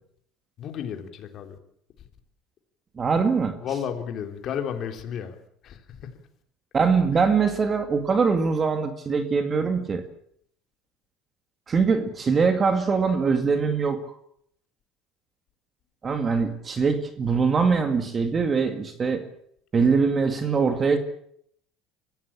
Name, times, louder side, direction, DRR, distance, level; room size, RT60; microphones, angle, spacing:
voice 1, 0.6-1.6 3.6-5.4 5.6-6.0, left 8 dB, 50° left, 3.3 m, -32 dB
voice 2, 3.0-3.6 6.7-10.1 11.7-14.1 16.0-19.3 19.7-21.0, right 5 dB, 25° right, 2.1 m, -22 dB
24.5 x 15.0 x 8.7 m
cardioid pair, 125°, 0 cm